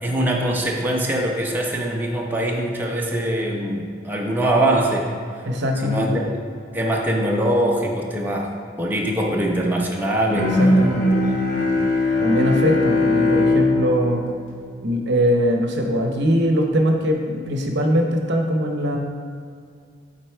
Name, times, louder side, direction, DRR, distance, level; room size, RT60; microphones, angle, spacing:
voice 1, 0.0-5.1 5.8-6.2 6.7-8.5 8.8-10.5 11.2-11.7, right 1 dB, 10° right, -2 dB, 0.7 m, -22 dB
voice 2, 5.5-6.3 10.6-11.3 12.2-14.2 14.8-19.0, equal, 60° right, 2 dB, 0.8 m, -21 dB
Bowed string instrument, 10.3-15.4, left 2 dB, 40° left, 1.2 m, -20 dB
7.9 x 4.1 x 4.5 m, 2.3 s
head